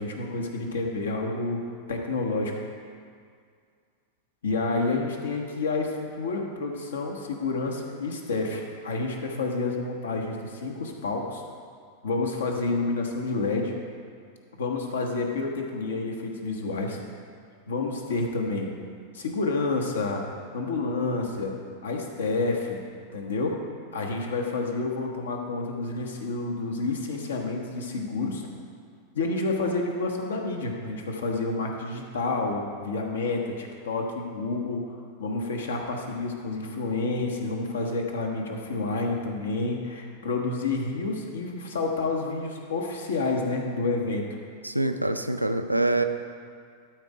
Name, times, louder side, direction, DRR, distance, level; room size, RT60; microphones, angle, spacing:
voice 1, 0.0-1.6 1.9-2.5 4.4-11.4 12.0-13.7 14.6-17.0 17.7-18.7 19.1-20.2 20.5-21.5 21.8-22.8 23.1-23.6 23.9-28.5 29.1-34.9 35.2-44.2, left 3 dB, 65° left, 2 dB, 1.1 m, -29 dB
voice 2, 44.6-46.0, right 2 dB, 85° right, 8 dB, 0.4 m, -25 dB
12.5 x 4.4 x 5.0 m, 2.2 s
figure-of-eight pair, 90°, 0 cm